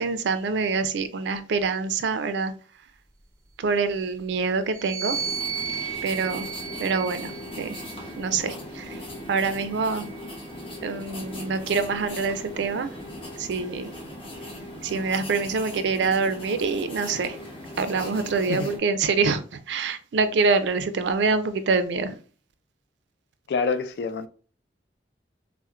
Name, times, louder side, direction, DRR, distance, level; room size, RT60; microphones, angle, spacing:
voice 1, 0.0-2.5 3.6-5.2 6.0-6.5 6.8-7.3 7.6-7.8 8.2-9.0 9.3-10.1 10.8-12.9 13.4-13.9 14.8-17.4 17.8-22.2, right 4 dB, 80° right, 0.4 m, -25 dB
sound 1, 4.7-8.3 9.1-10.7, right 7 dB, 15° right, 0.5 m, -35 dB
sound 2, 5.1-18.8, left 1 dB, 30° left, 0.8 m, -39 dB
voice 2, 23.5-24.3, left 4 dB, 65° left, 0.3 m, -26 dB
4.2 x 2.1 x 2.3 m
head